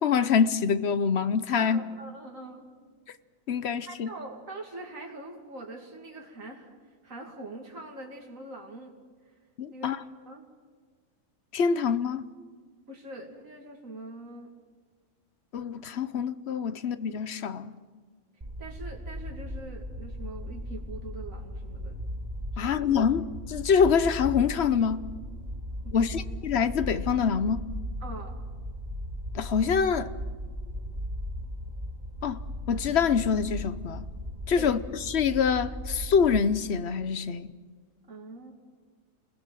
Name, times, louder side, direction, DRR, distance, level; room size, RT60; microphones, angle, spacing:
voice 1, 0.0-1.8 3.5-4.1 9.6-10.0 11.5-12.2 15.5-17.7 22.6-25.0 25.9-27.6 29.3-30.1 32.2-32.4 32.7-34.1 34.5-34.8 35.1-37.5, left 6 dB, 55° left, 1.1 m, -25 dB
voice 2, 1.5-2.7 3.9-6.7 7.0-8.9 9.7-10.5 12.9-14.5 18.6-22.0 22.5-22.9 25.8-26.2 28.0-28.5 34.6-34.8 38.1-38.5, right 2 dB, 75° right, 3.0 m, -43 dB
sound 1, 18.4-36.4, equal, 30° right, 2.9 m, -37 dB
28.5 x 21.5 x 7.7 m
omnidirectional pair, 1.4 m